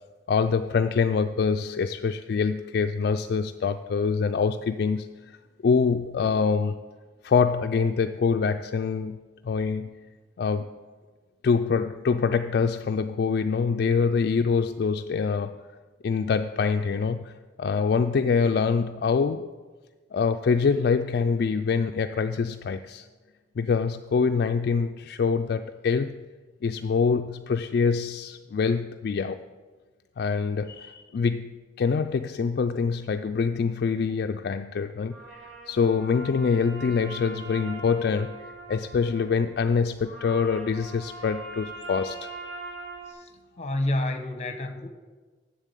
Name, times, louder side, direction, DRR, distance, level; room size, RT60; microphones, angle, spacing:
voice 1, 0.3-5.4 5.6-6.8 7.2-9.9 10.4-10.7 11.4-15.6 16.0-19.5 20.1-23.1 23.6-26.2 26.6-29.4 30.2-42.3, left 5 dB, 60° left, 7 dB, 0.3 m, -25 dB
sound 1, 35.1-43.1, right 2 dB, 85° right, 2.1 m, -41 dB
voice 2, 43.6-44.9, left 1 dB, 40° left, 8 dB, 0.9 m, -29 dB
7.5 x 7.2 x 8.2 m, 1.4 s
head